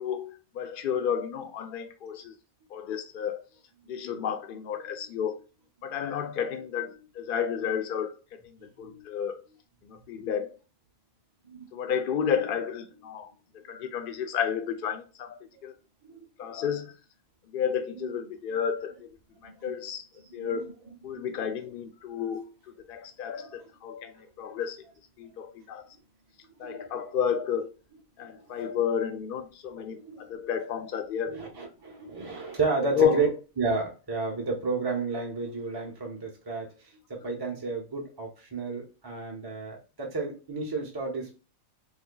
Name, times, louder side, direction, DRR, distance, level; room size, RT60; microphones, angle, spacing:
voice 1, 0.0-2.3 2.7-3.4 3.9-5.4 5.8-8.1 8.4-9.4 9.8-10.5 11.7-13.3 13.6-15.7 16.4-16.9 17.5-19.1 19.4-20.1 20.3-20.7 21.0-22.5 22.9-24.8 25.2-25.8 26.6-27.7 28.2-31.4 32.9-33.2, left 8 dB, 75° left, 0.5 m, -31 dB
voice 2, 19.5-19.8 20.4-20.6 21.1-21.3 23.3-23.6 26.6-27.0 28.3-28.4 29.9-30.3 31.3-33.3 33.6-41.4, right 4 dB, 25° right, 0.6 m, -32 dB
3.4 x 3.3 x 2.2 m
omnidirectional pair, 1.5 m